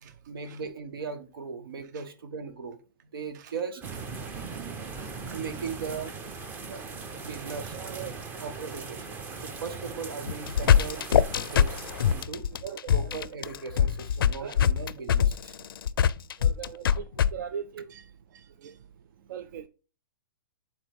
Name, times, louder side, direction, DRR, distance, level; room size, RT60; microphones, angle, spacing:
voice 1, 0.0-2.8 3.1-3.8 5.2-6.1 6.7-6.8 7.2-7.8 8.4-11.0 11.4-11.8 12.1-12.5 12.9-15.7, right 5 dB, 85° right, 1.2 m, -38 dB
sound 1, 3.8-12.2, right 4 dB, 15° right, 0.6 m, -39 dB
voice 2, 7.7-8.2 12.6-13.1 14.4-14.5 16.4-17.1 17.3-18.8 19.3-19.7, right 8 dB, 55° right, 0.4 m, -40 dB
sound 2, 10.3-17.3, left 8 dB, 85° left, 0.4 m, -23 dB
8.7 x 4.0 x 3.5 m
hypercardioid pair, 155°, 12 cm